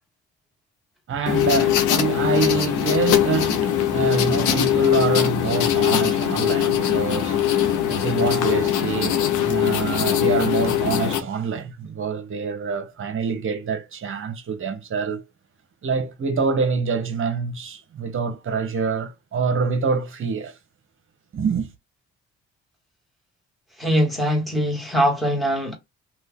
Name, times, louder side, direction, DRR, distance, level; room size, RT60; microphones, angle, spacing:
voice 1, 1.1-15.2 15.8-20.5 21.3-21.7, right 5 dB, 45° right, 0.9 m, -26 dB
sound 1, 1.3-11.2, left 10 dB, 85° left, 0.7 m, -21 dB
voice 2, 23.8-25.8, equal, ahead, 1.5 m, -22 dB
2.7 x 2.4 x 3.5 m
cardioid pair, 90°, 30 cm